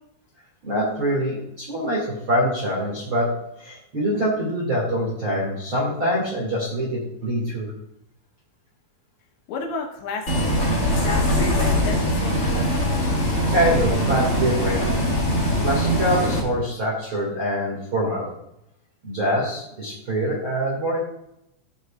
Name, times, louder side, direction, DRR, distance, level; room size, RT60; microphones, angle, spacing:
voice 1, 0.6-7.7 13.5-15.0 15.6-18.3 19.0-21.0, equal, 45° right, -5 dB, 1.7 m, -24 dB
voice 2, 9.5-11.0 11.7-12.9, left 4 dB, 75° left, 3 dB, 3.1 m, -33 dB
Bus, 10.3-16.4, equal, 45° left, 0.9 m, -22 dB
15.0 x 6.2 x 2.4 m, 0.79 s
omnidirectional pair, 5.6 m